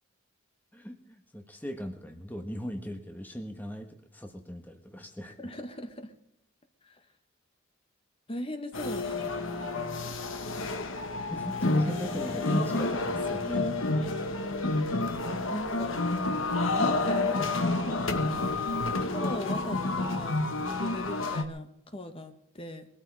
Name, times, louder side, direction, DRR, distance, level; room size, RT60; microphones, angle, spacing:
voice 1, 0.7-5.5 11.3-13.7 18.4-18.7, equal, 10° left, 5 dB, 1.3 m, -38 dB
voice 2, 5.3-6.1 6.8-7.0 8.3-10.1 15.5-16.0 16.7-18.3 19.1-22.9, left 1 dB, 25° left, 7 dB, 1.4 m, -39 dB
museum with jukebox, 8.7-21.4, left 2 dB, 70° left, 1.5 m, -29 dB
22.5 x 13.0 x 4.8 m, 0.74 s
head